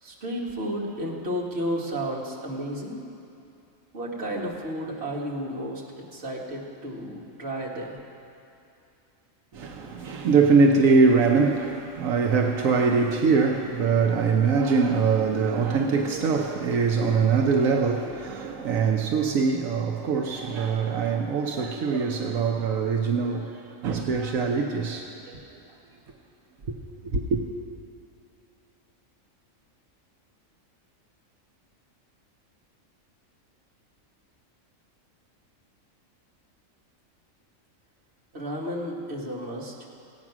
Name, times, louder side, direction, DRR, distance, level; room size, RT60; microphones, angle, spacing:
voice 1, 0.0-3.0 3.9-5.8 6.1-8.0 38.3-39.7, equal, 50° right, 2.0 m, -32 dB
voice 2, 9.5-25.4 26.7-26.8 27.1-27.4, right 4 dB, 85° right, 1.2 m, -23 dB
16.5 x 9.0 x 6.1 m
omnidirectional pair, 1.4 m